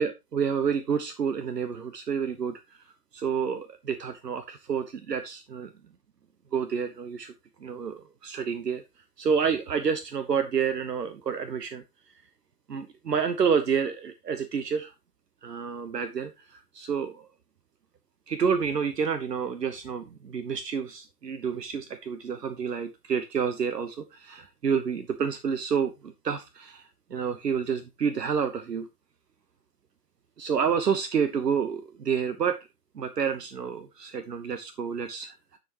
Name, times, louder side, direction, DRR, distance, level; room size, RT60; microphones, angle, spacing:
voice 1, 0.0-2.8 3.1-5.7 6.5-7.3 7.6-8.8 9.2-11.8 12.7-14.9 15.4-17.3 18.3-28.9 30.4-32.6 32.9-35.3, right 6 dB, 80° right, 10 dB, 1.1 m, -29 dB
10.5 x 6.4 x 3.0 m, 0.23 s
figure-of-eight pair, 125°, 48 cm